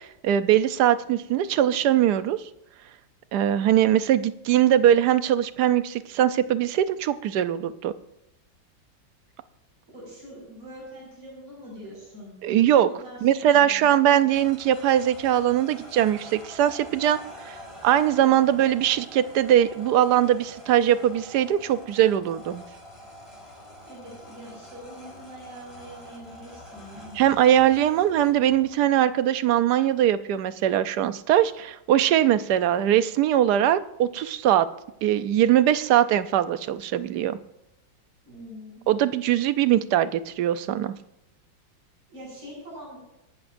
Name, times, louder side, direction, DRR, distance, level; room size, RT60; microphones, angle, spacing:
voice 1, 0.0-2.4 3.3-7.9 12.4-12.9 13.2-17.2 17.5-17.6 17.8-22.6 27.1-34.7 35.0-37.4 38.9-40.9, right 11 dB, 70° right, 13 dB, 1.2 m, -21 dB
voice 2, 9.9-12.4 13.0-13.9 23.8-27.2 38.2-38.8 42.1-43.0, equal, 50° right, -4 dB, 6.7 m, -43 dB
sound 1, 13.9-28.7, equal, 15° left, 4.1 m, -46 dB
27.0 x 12.0 x 2.6 m, 0.89 s
omnidirectional pair, 2.0 m